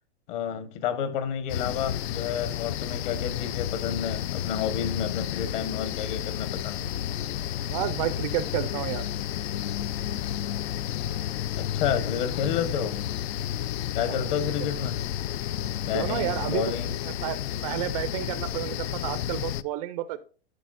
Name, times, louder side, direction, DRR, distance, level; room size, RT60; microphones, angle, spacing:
voice 1, 0.3-6.9 11.6-13.0 13.9-15.0 15.8-16.9, left 8 dB, 50° left, 1.3 m, -30 dB
sound 1, 1.5-19.6, left 11 dB, 75° left, 0.6 m, -31 dB
voice 2, 7.7-9.0 14.0-14.5 15.8-16.7 17.1-20.2, right 13 dB, 35° right, 0.4 m, -31 dB
14.5 x 6.0 x 2.5 m
supercardioid pair, 160°, 32 cm